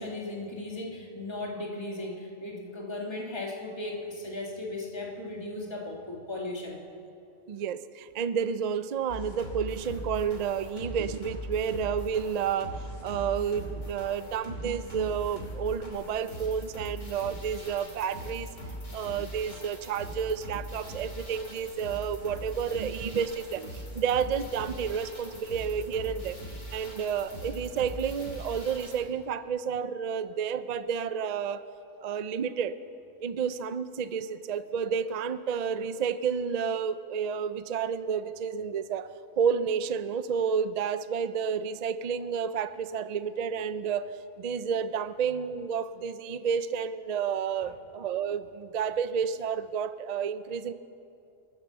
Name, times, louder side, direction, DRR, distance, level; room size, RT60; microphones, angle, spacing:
voice 1, 0.0-6.8 47.6-47.7, left 2 dB, 20° left, -1 dB, 2.0 m, -36 dB
voice 2, 7.5-18.5 18.9-26.4 26.7-31.7 32.0-32.8 33.2-39.1 39.4-50.7, right 7 dB, 55° right, 13 dB, 0.4 m, -30 dB
sound 1, 9.1-29.0, equal, 70° left, 3.2 m, -41 dB
24.0 x 8.8 x 6.8 m, 2.6 s
omnidirectional pair, 1.3 m